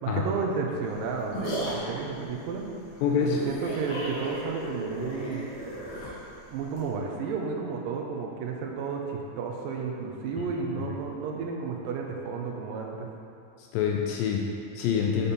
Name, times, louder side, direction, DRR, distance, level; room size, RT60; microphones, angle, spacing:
voice 1, 0.0-2.7 3.2-5.5 6.5-13.1, right 5 dB, 80° right, 0 dB, 2.2 m, -32 dB
sound 1, 0.8-6.9, equal, 50° left, 2.0 m, -36 dB
voice 2, 3.0-3.4 10.4-10.5 13.6-15.3, left 7 dB, 80° left, 0 dB, 2.1 m, -26 dB
7.0 x 4.3 x 5.1 m, 2.6 s
omnidirectional pair, 4.3 m